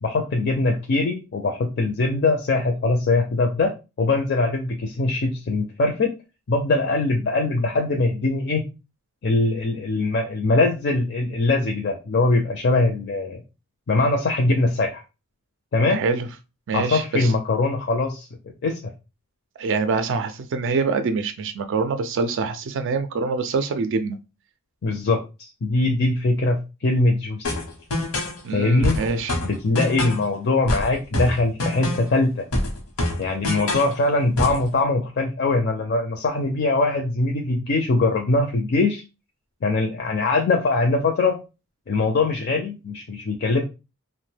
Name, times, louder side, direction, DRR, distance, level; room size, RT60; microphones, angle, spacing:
voice 1, 0.0-3.7 4.0-6.1 6.5-8.6 9.2-13.4 13.9-15.0 15.7-16.0 16.7-18.3 18.6-18.8 24.8-27.6 28.5-29.0 29.4-32.5 33.2-39.0 39.6-41.4 41.9-43.6, left 2 dB, 50° left, 0.4 m, -22 dB
voice 2, 15.9-16.3 16.7-17.3 19.6-24.2 28.4-29.4, right 4 dB, 60° right, 0.3 m, -25 dB
sound 1, 27.4-28.4 28.8-30.3 30.7-32.2 32.5-34.0 34.4-34.7, left 1 dB, 90° left, 0.9 m, -25 dB
2.8 x 2.1 x 3.3 m
head